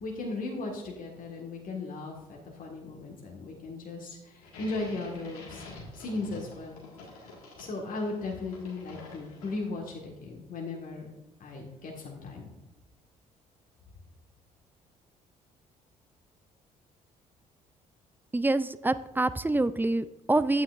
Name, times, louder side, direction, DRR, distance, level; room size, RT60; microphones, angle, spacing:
voice 1, 0.0-5.6 5.9-6.8 7.2-7.3 7.6-11.1 11.4-12.5, left 3 dB, 50° left, -1 dB, 1.6 m, -37 dB
sound 1, 4.4-9.9, left 2 dB, 85° left, 1.8 m, -48 dB
voice 2, 18.3-20.6, right 2 dB, 10° right, 14 dB, 0.4 m, -26 dB
9.5 x 8.8 x 2.5 m, 0.91 s
hypercardioid pair, 50°, 18 cm